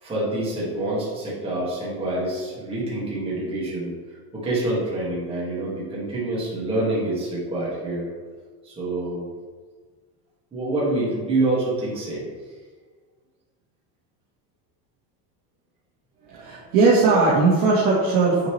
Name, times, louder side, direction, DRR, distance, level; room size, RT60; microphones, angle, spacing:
voice 1, 0.0-3.9 4.3-8.1 8.6-9.3 10.5-12.3, right 2 dB, 15° right, -7 dB, 2.0 m, -26 dB
voice 2, 16.3-18.5, right 3 dB, 70° right, -7 dB, 1.7 m, -18 dB
9.3 x 4.4 x 3.2 m, 1.5 s
cardioid pair, 175°, 39 cm